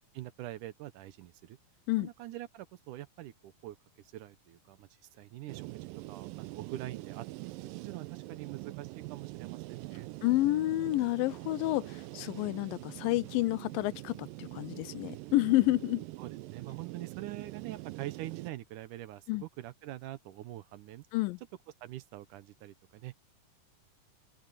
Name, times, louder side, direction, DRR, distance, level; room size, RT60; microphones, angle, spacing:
voice 1, 0.0-1.6 2.0-7.5 7.8-10.1 16.2-21.1 21.8-23.1, right 15 dB, 75° right, 2.2 m, -45 dB
sound 1, 5.5-18.5, right 21 dB, 90° right, 2.3 m, -44 dB
voice 2, 10.2-16.0 19.3-19.4 21.1-21.4, left 18 dB, 85° left, 2.4 m, -29 dB
open air
omnidirectional pair, 3.9 m